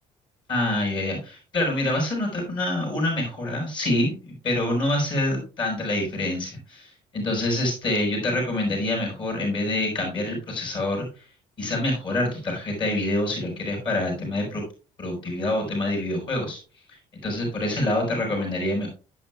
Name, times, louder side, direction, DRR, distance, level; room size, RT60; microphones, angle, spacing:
voice 1, 0.5-11.1 11.6-14.6 15.0-16.6 17.1-18.9, left 1 dB, 35° left, 0 dB, 5.1 m, -26 dB
11.0 x 9.4 x 2.3 m, 0.36 s
cardioid pair, 165°, 13 cm